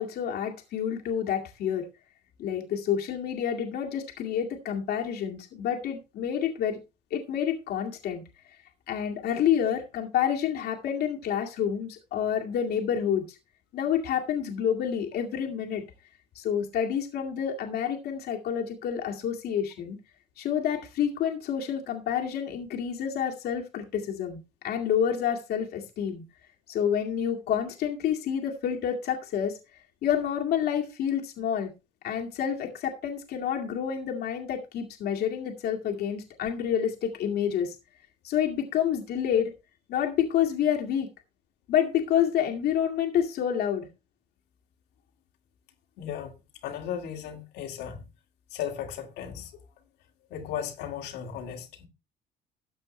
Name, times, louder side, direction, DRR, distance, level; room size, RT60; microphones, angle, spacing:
voice 1, 0.0-1.9 2.4-6.8 7.1-8.2 8.9-13.4 13.7-15.8 16.4-20.0 20.4-24.4 24.6-26.2 26.7-29.6 30.0-31.7 32.0-37.8 38.2-39.5 39.9-41.1 41.7-43.9, left 9 dB, 70° left, 2.1 m, -28 dB
voice 2, 46.0-48.0 48.5-49.5 50.3-51.9, left 9 dB, 90° left, 2.4 m, -36 dB
13.5 x 8.3 x 3.2 m
cardioid pair, 110°, 17 cm